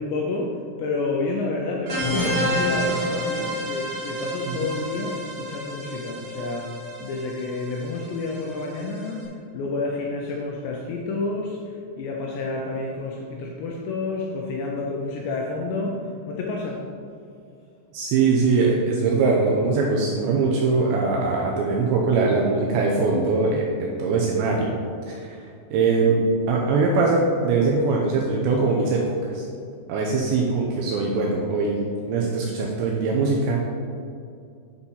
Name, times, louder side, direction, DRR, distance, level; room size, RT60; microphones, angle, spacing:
voice 1, 0.0-9.3 9.5-11.6 12.0-16.0 16.3-16.8, left 3 dB, 80° left, -1 dB, 2.6 m, -29 dB
sound 1, 1.9-9.2, equal, 50° right, 1.6 m, -29 dB
voice 2, 17.9-24.7 25.1-26.2 26.5-29.4 29.9-33.6, right 4 dB, 80° right, -2 dB, 2.6 m, -22 dB
9.8 x 4.4 x 5.5 m, 2.4 s
omnidirectional pair, 5.8 m